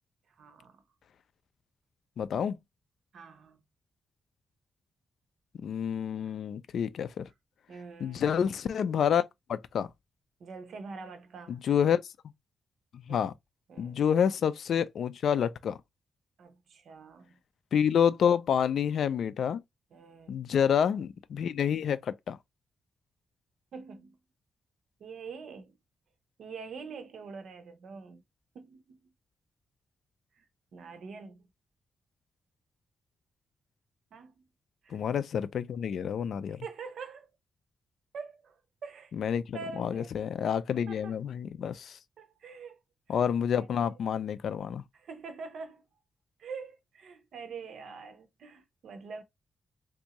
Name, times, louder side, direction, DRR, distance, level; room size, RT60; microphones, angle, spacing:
voice 1, 0.3-0.8 3.1-3.6 6.2-6.4 7.7-8.2 10.4-11.6 13.1-13.3 13.7-14.0 16.4-17.4 19.9-20.4 23.7-24.2 25.0-25.7 26.4-28.2 28.5-29.1 30.4-30.5 30.7-31.5 34.1-34.5 34.8-35.0 36.6-37.3 38.1-39.1 39.5-40.1 40.9-41.1 42.2-42.8 43.1-43.3 43.5-43.9 44.9-45.8 46.4-49.2, right 5 dB, 75° right, 0.8 m, -45 dB
voice 2, 2.2-2.6 5.6-7.3 8.0-9.2 9.5-9.9 11.5-12.0 13.1-13.3 13.8-15.8 17.7-19.6 20.3-22.4 34.9-36.6 39.2-42.0 43.1-44.8, left 8 dB, 70° left, 0.3 m, -28 dB
3.5 x 2.6 x 2.9 m
wide cardioid pair, 155°, 0 cm